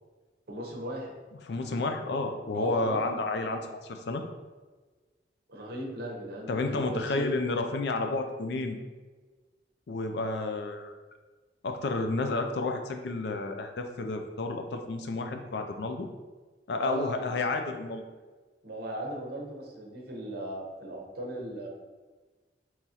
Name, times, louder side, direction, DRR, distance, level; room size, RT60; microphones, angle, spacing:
voice 1, 0.5-1.1 2.5-3.1 5.5-7.3 15.4-15.5 16.8-17.3 18.6-21.7, right 1 dB, 60° right, -1 dB, 0.8 m, -38 dB
voice 2, 1.5-4.2 6.5-8.8 9.9-10.9 11.6-16.1 16.7-18.0, left 3 dB, 65° left, 5 dB, 0.4 m, -31 dB
3.7 x 3.0 x 2.8 m, 1.3 s
head